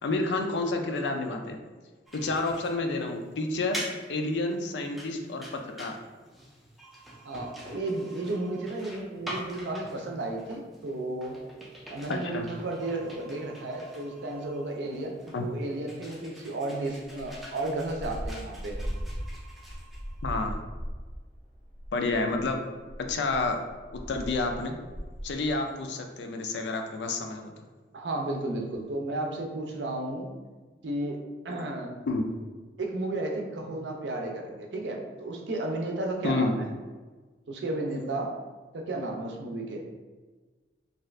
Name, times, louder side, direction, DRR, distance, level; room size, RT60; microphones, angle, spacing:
voice 1, 0.0-1.6 2.1-3.8 4.1-6.0 12.1-12.5 15.3-15.5 20.2-20.6 21.9-22.6 23.0-23.6 23.9-24.8 25.2-27.5 32.1-32.3 36.2-36.5, left 3 dB, 75° left, 4 dB, 0.4 m, -29 dB
sound 1, 2.1-20.5, equal, ahead, 0.4 m, -45 dB
voice 2, 7.2-11.4 11.9-18.8 27.9-30.3 30.8-31.2 31.4-32.0 32.8-36.7 37.5-38.3 38.7-39.9, right 2 dB, 80° right, 1 dB, 0.5 m, -33 dB
sound 2, 17.1-25.5, equal, 40° right, 0.7 m, -39 dB
2.6 x 2.4 x 3.1 m, 1.3 s
head